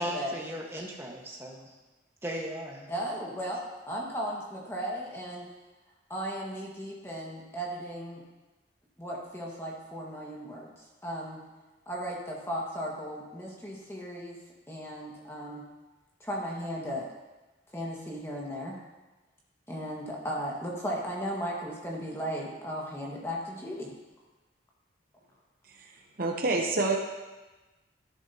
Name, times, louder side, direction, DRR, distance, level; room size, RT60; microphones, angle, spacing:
voice 1, 0.0-1.7 2.2-2.9, equal, 15° right, -2 dB, 1.4 m, -36 dB
voice 2, 2.9-5.5 6.1-8.2 9.0-10.7 11.0-11.4 11.9-14.4 14.7-15.6 16.2-17.0 17.7-18.8 19.7-23.9, equal, 15° left, -3 dB, 1.7 m, -36 dB
voice 3, 25.7-27.0, right 3 dB, 45° right, 2 dB, 0.8 m, -28 dB
12.5 x 11.0 x 2.9 m, 1.2 s
head